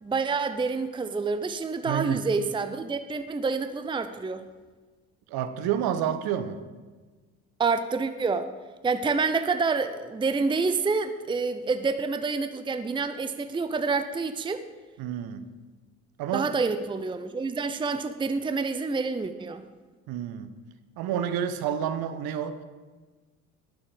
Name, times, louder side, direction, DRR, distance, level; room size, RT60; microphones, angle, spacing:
voice 1, 0.0-4.4 7.6-8.5 8.8-14.7 16.3-19.6, right 4 dB, 10° right, 10 dB, 0.7 m, -28 dB
voice 2, 1.8-2.2 5.3-6.6 15.0-15.4 16.2-16.5 20.1-20.5 21.0-22.6, right 9 dB, 55° right, 11 dB, 1.2 m, -29 dB
20.0 x 7.2 x 5.1 m, 1.4 s
figure-of-eight pair, 55°, 43 cm